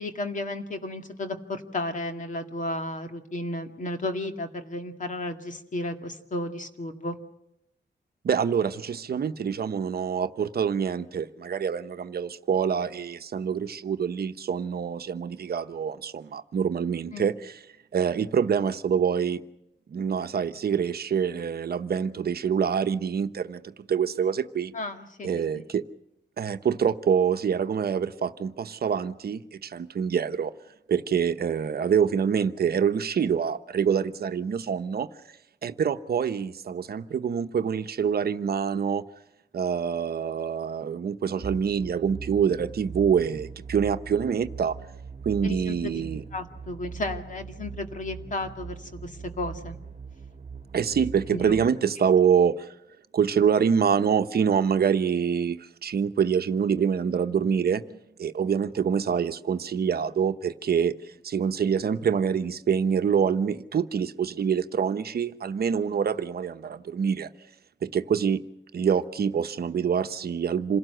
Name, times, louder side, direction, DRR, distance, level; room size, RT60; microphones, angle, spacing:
voice 1, 0.0-7.2 17.1-17.3 24.7-25.6 45.4-46.0 46.3-49.8 51.3-51.6, left 2 dB, 45° left, 2.1 m, -33 dB
voice 2, 8.2-17.6 17.9-19.4 19.9-24.7 25.2-25.8 26.4-30.5 30.9-35.1 35.6-39.0 39.5-44.8 45.2-46.2 50.7-52.7 53.1-67.3 67.8-68.4 68.7-70.8, right 7 dB, 60° right, 1.0 m, -26 dB
sound 1, 41.4-51.7, right 5 dB, 40° right, 1.7 m, -41 dB
27.0 x 17.5 x 7.9 m
wide cardioid pair, 140°, 18 cm